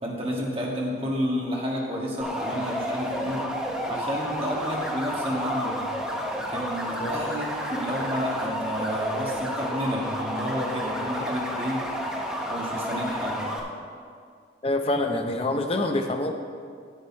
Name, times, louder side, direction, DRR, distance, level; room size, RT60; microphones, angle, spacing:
voice 1, 0.0-3.5 3.8-5.8 6.4-11.9 12.5-13.5, equal, 30° right, -3 dB, 1.6 m, -30 dB
sound 1, 2.2-13.6, equal, 5° right, 0.8 m, -31 dB
voice 2, 14.6-16.3, left 2 dB, 30° left, 4 dB, 0.6 m, -26 dB
9.0 x 8.0 x 4.4 m, 2.1 s
head